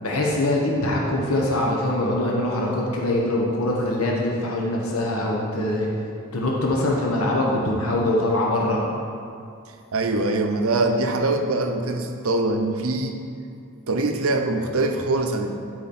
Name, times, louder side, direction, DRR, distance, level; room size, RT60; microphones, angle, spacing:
voice 1, 0.0-5.9 6.3-8.8, left 1 dB, 85° left, -2 dB, 1.2 m, -23 dB
voice 2, 9.9-13.2 13.9-15.5, right 2 dB, 80° right, 5 dB, 0.8 m, -23 dB
11.5 x 5.1 x 4.3 m, 2.4 s
head